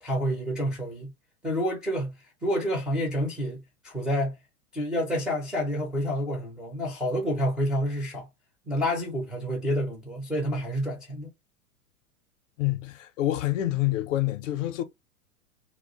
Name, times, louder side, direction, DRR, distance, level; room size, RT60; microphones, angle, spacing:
voice 1, 0.0-1.1 1.4-2.1 2.4-4.3 4.7-8.3 8.7-11.3, equal, ahead, 0.4 m, -28 dB
voice 2, 12.6-14.8, left 14 dB, 60° left, 0.6 m, -27 dB
2.2 x 2.0 x 2.7 m
hypercardioid pair, 100°, 44 cm